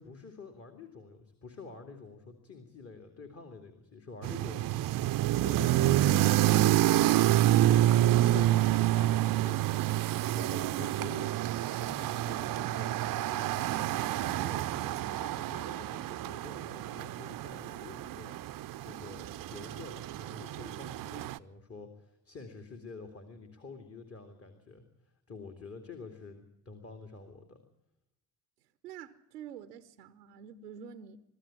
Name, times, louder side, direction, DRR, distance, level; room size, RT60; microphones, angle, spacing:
voice 1, 0.0-6.6 7.4-7.9 8.3-10.0 10.3-11.3 11.7-27.6, left 4 dB, 30° left, 2.6 m, -48 dB
sound 1, 4.2-21.4, right 14 dB, 45° right, 0.7 m, -28 dB
Typing, 8.5-8.7 9.0-9.5 9.9-10.3 10.8-11.4 11.8-12.4 12.8-13.1 13.4-13.5 13.7-13.8, left 3 dB, 70° left, 4.6 m, -63 dB
voice 2, 28.8-31.2, right 8 dB, 80° right, 0.8 m, -47 dB
24.0 x 14.0 x 8.7 m
figure-of-eight pair, 45°, 47 cm